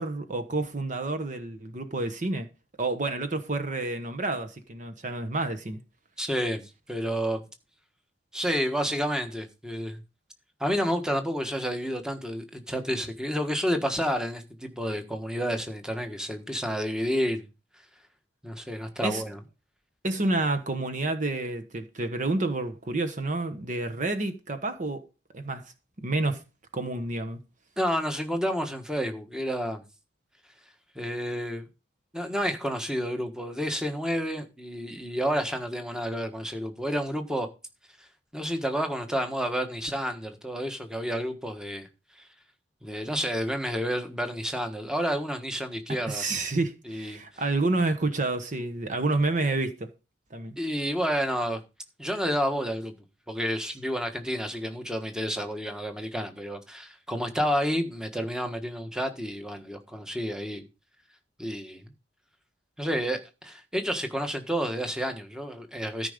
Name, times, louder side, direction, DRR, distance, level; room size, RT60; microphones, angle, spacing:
voice 1, 0.0-2.5 2.8-5.8 19.0-19.2 20.0-25.0 25.3-25.7 26.0-26.4 26.7-27.4 46.1-49.9 50.3-50.5, right 2 dB, 45° right, 1.2 m, -29 dB
voice 2, 6.2-7.4 8.3-10.0 10.6-17.5 18.4-19.4 27.8-29.8 30.9-31.7 32.1-37.5 38.3-41.9 42.8-46.2 46.9-47.2 50.6-51.6 52.0-52.9 53.3-60.6 61.4-61.8 62.8-66.1, equal, 5° right, 1.4 m, -30 dB
13.5 x 5.4 x 5.2 m
head